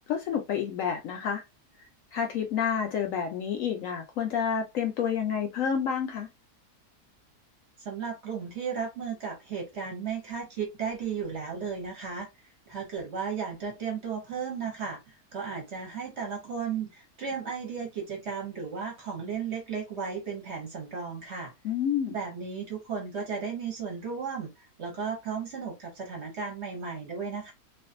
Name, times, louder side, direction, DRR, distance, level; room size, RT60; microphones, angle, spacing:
voice 1, 0.1-1.4 2.1-6.3 21.6-22.2, left 7 dB, 70° left, 0.8 m, -29 dB
voice 2, 7.8-12.3 12.7-21.5 22.1-27.5, right 6 dB, 55° right, 0.9 m, -35 dB
2.5 x 2.3 x 2.5 m
omnidirectional pair, 1.7 m